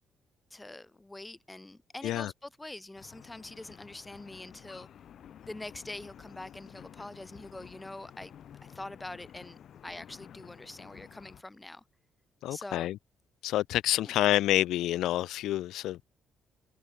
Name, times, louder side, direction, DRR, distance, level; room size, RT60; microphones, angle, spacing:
voice 1, 0.5-4.9 5.5-8.3 8.6-11.8 12.5-12.9 14.0-14.2, left 2 dB, 15° left, 5.4 m, -44 dB
sound 1, 3.0-11.4, left 9 dB, 65° left, 2.0 m, -52 dB
voice 2, 12.4-13.0 13.4-16.1, left 14 dB, 85° left, 0.7 m, -28 dB
cardioid pair, 90°, 0 cm